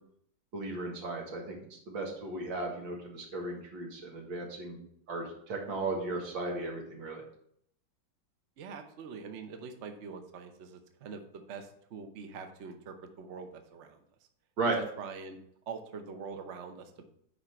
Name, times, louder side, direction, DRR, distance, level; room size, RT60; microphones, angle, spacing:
voice 1, 0.5-7.2 14.6-14.8, right 2 dB, 90° right, 0 dB, 2.5 m, -36 dB
voice 2, 8.6-14.0 14.7-15.4 15.7-17.1, right 5 dB, 50° right, 6 dB, 0.9 m, -44 dB
9.8 x 3.9 x 4.4 m, 0.69 s
omnidirectional pair, 2.0 m